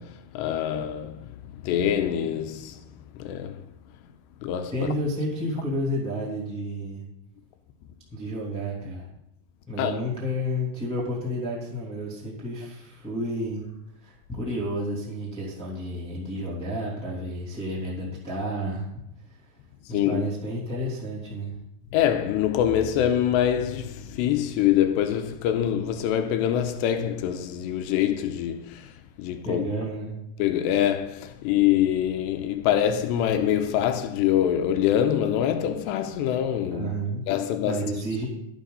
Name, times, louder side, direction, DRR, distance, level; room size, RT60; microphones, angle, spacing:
voice 1, 0.0-1.3 1.6-2.8 3.2-3.6 4.4-4.9 9.8-10.0 19.9-20.2 21.9-28.9 29.2-29.7 30.4-36.9 37.3-37.8, left 10 dB, 85° left, 2.6 m, -25 dB
voice 2, 4.7-7.0 8.1-9.1 9.7-13.7 14.0-18.9 19.2-19.6 19.9-21.5 29.4-30.1 36.7-37.2 37.6-38.3, equal, ahead, 1.5 m, -31 dB
12.5 x 11.5 x 4.0 m
omnidirectional pair, 5.5 m